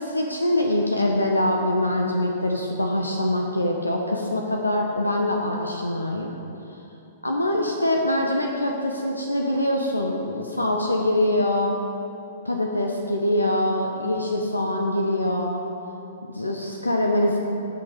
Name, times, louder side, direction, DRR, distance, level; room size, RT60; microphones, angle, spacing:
voice 1, 0.0-6.3 7.2-11.8 12.4-15.6 16.3-17.4, left 1 dB, 80° left, 2 dB, 0.9 m, -24 dB
17.0 x 6.1 x 4.9 m, 2.9 s
figure-of-eight pair, 110°, 0 cm